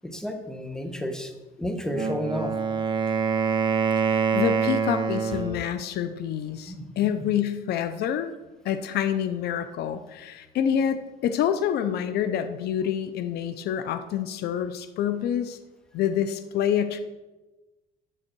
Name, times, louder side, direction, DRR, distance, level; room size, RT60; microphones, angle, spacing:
voice 1, 0.0-1.3 1.6-2.5 6.7-7.2, equal, 5° left, 6 dB, 1.2 m, -32 dB
Wind instrument woodwind instrument, 1.8-5.6, right 5 dB, 30° right, 1.1 m, -25 dB
voice 2, 4.1-8.3 8.6-15.6 15.9-17.0, left 9 dB, 70° left, 11 dB, 0.6 m, -27 dB
9.0 x 7.6 x 4.6 m, 1.1 s
cardioid pair, 110°, 17 cm